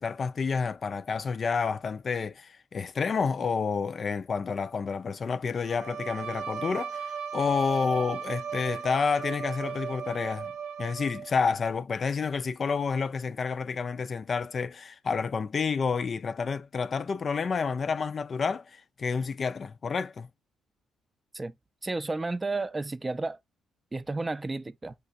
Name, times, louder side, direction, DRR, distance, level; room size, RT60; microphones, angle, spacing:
voice 1, 0.0-10.5 10.8-20.3, left 5 dB, 45° left, 0.3 m, -29 dB
Bowed string instrument, 5.7-11.5, right 7 dB, 85° right, 0.7 m, -36 dB
voice 2, 21.8-23.4 23.9-24.9, right 3 dB, 20° right, 0.5 m, -32 dB
5.9 x 3.3 x 2.6 m
cardioid pair, 90°, 0 cm